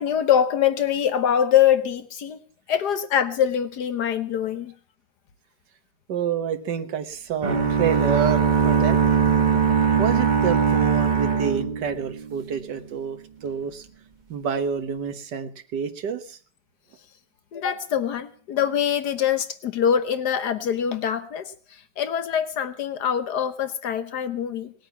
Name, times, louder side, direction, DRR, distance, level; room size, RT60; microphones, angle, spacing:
voice 1, 0.0-2.4 2.7-4.7 17.5-21.5 22.0-24.7, left 9 dB, 75° left, 11 dB, 1.6 m, -23 dB
voice 2, 6.1-9.0 10.0-13.9 14.3-16.4, right 7 dB, 85° right, 9 dB, 1.9 m, -28 dB
sound 1, 7.4-12.4, right 6 dB, 30° right, 1.1 m, -21 dB
19.0 x 8.9 x 7.1 m, 0.43 s
omnidirectional pair, 1.8 m